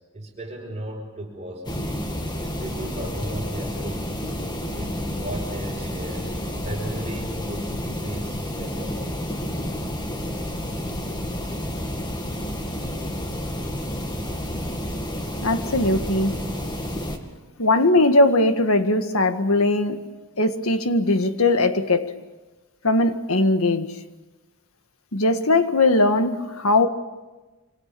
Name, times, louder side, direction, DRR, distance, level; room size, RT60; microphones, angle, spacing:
voice 1, 0.1-2.1 2.4-4.1 4.7-6.3 6.6-9.0, right 1 dB, 30° right, 0 dB, 5.0 m, -35 dB
sound 1, 1.6-17.2, equal, 20° left, 2.0 m, -30 dB
voice 2, 15.4-16.4 17.6-20.0 20.4-22.1 22.8-23.9 25.1-26.9, left 2 dB, 80° left, 8 dB, 1.8 m, -20 dB
27.0 x 25.5 x 6.9 m, 1.2 s
head